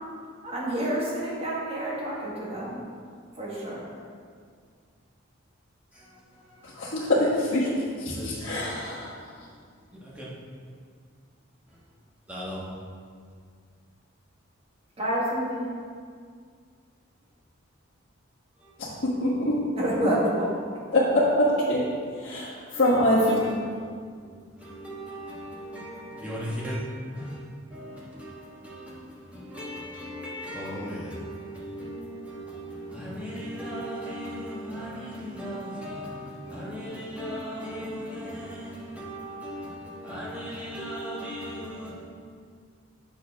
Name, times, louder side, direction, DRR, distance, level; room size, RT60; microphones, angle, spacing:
voice 1, 0.4-2.8 3.4-3.8 15.0-15.7 19.8-20.5, right 1 dB, 30° right, -5 dB, 1.6 m, -28 dB
voice 2, 5.9-6.7 8.1-8.7 9.1-9.2 10.0-10.3 12.3-12.6 18.6-18.7 22.7-23.8 24.2-26.8 27.1-27.4 27.7-41.9, equal, 5° right, -8 dB, 1.5 m, -37 dB
voice 3, 6.8-7.7 8.0-9.1 19.0-19.5 20.9-21.8 22.2-22.5 22.8-23.4, left 1 dB, 65° left, -10 dB, 1.4 m, -23 dB
7.8 x 6.4 x 3.5 m, 2.1 s
head